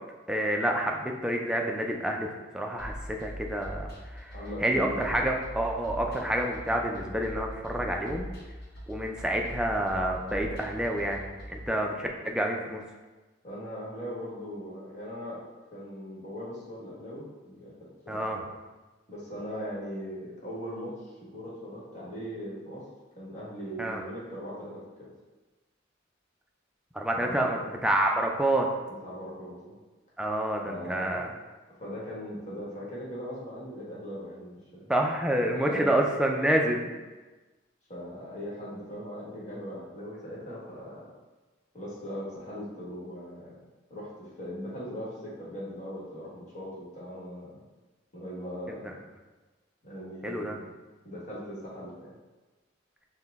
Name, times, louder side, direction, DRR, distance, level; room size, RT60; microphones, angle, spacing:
voice 1, 0.3-2.3 2.5-4.3 4.6-8.3 8.9-12.8 18.1-18.4 23.8-24.0 26.9-28.7 30.2-31.3 34.9-36.9 50.2-50.6, right 1 dB, 5° right, 1 dB, 0.3 m, -28 dB
sound 1, 2.8-11.7, equal, 55° left, 0.8 m, -41 dB
voice 2, 4.3-5.2 13.4-15.4 15.7-17.7 18.0-18.5 19.1-22.8 23.1-25.1 27.1-27.6 28.9-29.7 30.6-31.3 31.8-34.9 35.5-36.0 37.9-41.1 41.7-43.6 43.9-47.6 48.1-48.9 49.8-50.6 51.0-52.1, equal, 40° left, -6 dB, 1.3 m, -39 dB
5.7 x 2.1 x 3.4 m, 1.2 s
head